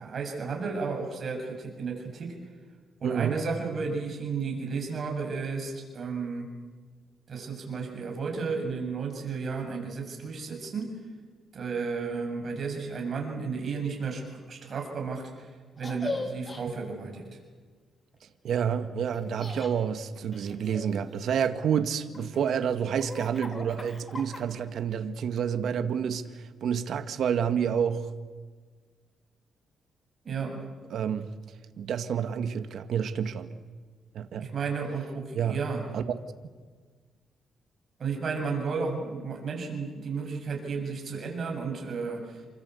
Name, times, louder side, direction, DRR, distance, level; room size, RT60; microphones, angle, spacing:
voice 1, 0.0-2.3 3.0-6.5 7.3-10.9 11.5-17.2 30.2-30.6 34.4-35.8 38.0-42.4, right 5 dB, 45° right, 7.3 m, -33 dB
voice 2, 3.0-3.4 18.4-28.1 30.9-31.3 31.8-33.5 34.1-34.5 35.3-35.6 35.9-36.0, right 8 dB, 65° right, 1.8 m, -29 dB
Laughter, 15.8-16.6 19.1-19.7 20.3-21.6 22.1-24.7, left 2 dB, 25° left, 3.5 m, -39 dB
28.5 x 24.5 x 8.4 m
cardioid pair, 130°, 0 cm